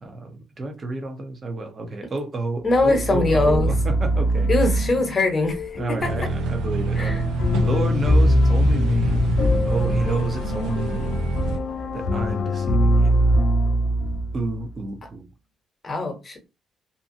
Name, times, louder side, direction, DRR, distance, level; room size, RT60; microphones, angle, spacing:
voice 1, 0.0-4.8 5.7-9.2 9.6-11.2 11.9-13.2 14.3-15.3, right 2 dB, 40° right, 0.8 m, -30 dB
voice 2, 2.6-3.7 4.5-6.3 7.0-7.2 15.8-16.5, left 2 dB, 35° left, 1.0 m, -22 dB
sound 1, 2.7-14.7, equal, 65° left, 0.3 m, -22 dB
sound 2, 6.0-11.6, right 2 dB, 90° right, 0.6 m, -26 dB
2.7 x 2.3 x 2.6 m
cardioid pair, 90°, 0 cm